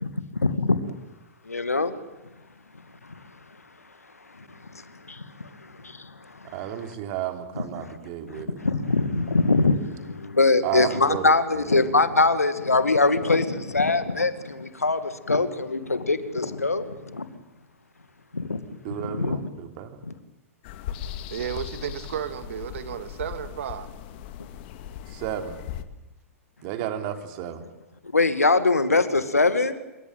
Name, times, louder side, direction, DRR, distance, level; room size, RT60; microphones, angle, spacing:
voice 1, 0.4-0.9 1.5-1.9 4.4-4.5 4.7-6.5 8.3-17.3 18.3-18.6 19.0-19.5 20.1-20.2 28.1-29.7, left 3 dB, 80° left, 11 dB, 2.2 m, -23 dB
voice 2, 6.5-8.6 10.6-12.0 18.8-20.0 25.1-25.6 26.6-27.6, right 11 dB, 40° right, 7 dB, 3.3 m, -32 dB
sound 1, 20.6-25.8, left 10 dB, 45° left, 2.1 m, -38 dB
voice 3, 21.3-23.9, right 9 dB, 60° right, 12 dB, 2.1 m, -33 dB
27.0 x 24.0 x 9.2 m, 1.0 s
figure-of-eight pair, 105°, 8 cm